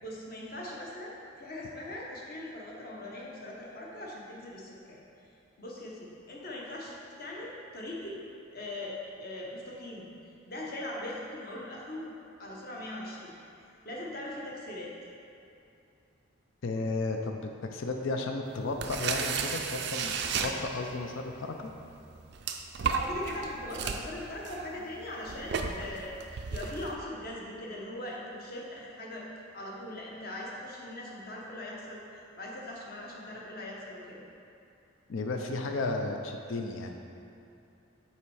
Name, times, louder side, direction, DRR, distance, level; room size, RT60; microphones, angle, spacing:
voice 1, 0.0-5.0 5.6-8.2 8.5-10.1 10.5-12.1 12.4-13.3 13.8-14.9 22.9-29.3 29.5-34.2, left 1 dB, 45° left, -3 dB, 0.9 m, -40 dB
voice 2, 16.6-21.7 35.1-37.0, left 3 dB, 70° left, 3 dB, 0.5 m, -33 dB
sound 1, 18.6-21.1 21.7-26.9, right 6 dB, 55° right, 0.4 m, -34 dB
5.7 x 4.3 x 4.8 m, 2.7 s
head